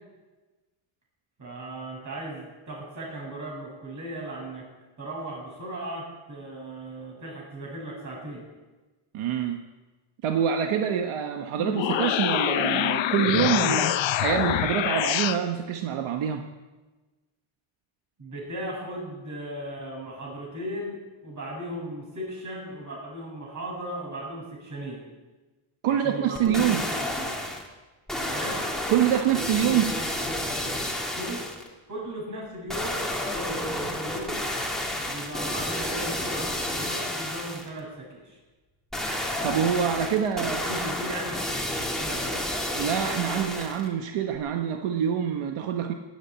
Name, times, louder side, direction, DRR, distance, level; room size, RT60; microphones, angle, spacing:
voice 1, 1.4-4.7 5.0-8.5 18.2-25.1 25.9-27.4 28.2-28.7 31.1-31.4 31.9-34.5 35.1-38.4 40.6-42.3, right 1 dB, 35° right, -2 dB, 7.3 m, -37 dB
voice 2, 9.1-9.6 10.2-13.9 14.2-16.4 25.8-26.8 28.9-30.0 39.4-40.6 42.8-45.9, right 9 dB, 80° right, 4 dB, 1.3 m, -25 dB
sound 1, 11.6-15.4, left 11 dB, 65° left, 1.0 m, -25 dB
sound 2, 26.3-27.7 28.1-31.7 32.7-37.7 38.9-43.9 44.3-44.4, left 1 dB, ahead, 2.2 m, -30 dB
18.0 x 8.8 x 8.8 m, 1.2 s
cardioid pair, 165°, 49 cm